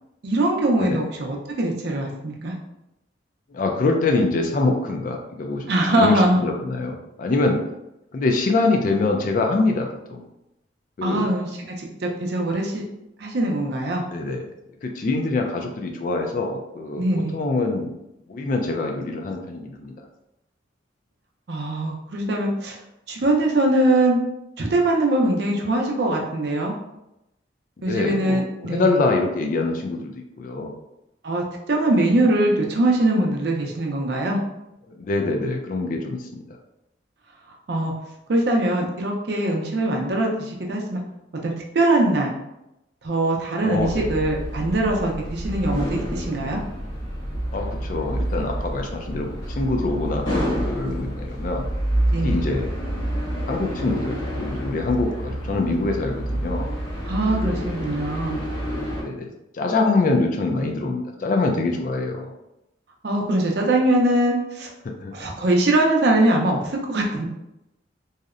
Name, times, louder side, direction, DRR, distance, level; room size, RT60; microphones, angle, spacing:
voice 1, 0.2-2.5 5.7-6.4 11.0-11.5 11.8-12.8 13.2-14.0 17.0-17.4 21.5-22.8 23.1-24.2 24.6-26.7 27.8-29.0 31.2-34.4 37.7-37.9 38.3-41.0 41.4-42.4 43.0-46.6 52.1-52.4 57.1-58.4 63.0-64.7 65.1-67.3, right 1 dB, 60° right, 0 dB, 0.5 m, -22 dB
voice 2, 3.5-7.6 8.1-10.3 11.0-11.3 14.1-14.4 14.8-17.9 18.3-19.9 27.9-30.7 35.0-36.4 43.6-44.1 47.5-51.7 52.2-52.6 53.5-56.7 57.4-57.7 59.0-59.3 59.5-62.3 64.8-65.1, left 3 dB, 45° left, 3 dB, 0.3 m, -24 dB
sound 1, 43.7-59.0, equal, 75° left, 1.0 m, -28 dB
2.7 x 2.0 x 2.4 m, 0.88 s
head